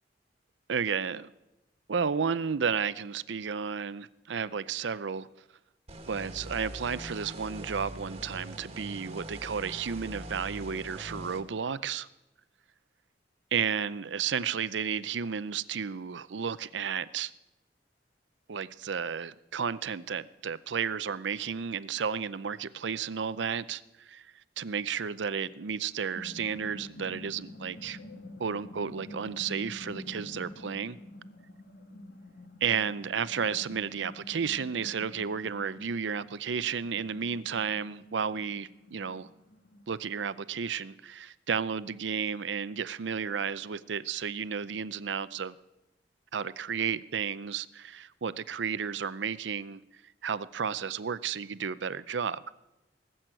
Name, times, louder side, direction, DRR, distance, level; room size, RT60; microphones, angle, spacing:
voice 1, 0.7-1.3 1.9-5.3 6.1-12.1 13.5-17.3 18.5-24.3 24.6-28.0 28.4-31.0 32.6-39.3 39.9-45.6 46.3-49.8 50.2-52.4, right 6 dB, 80° right, 16 dB, 0.6 m, -32 dB
sound 1, 5.9-11.4, right 1 dB, 35° right, 1.5 m, -43 dB
sound 2, 25.7-39.9, left 1 dB, 65° left, 1.7 m, -48 dB
19.0 x 7.9 x 9.0 m, 0.97 s
head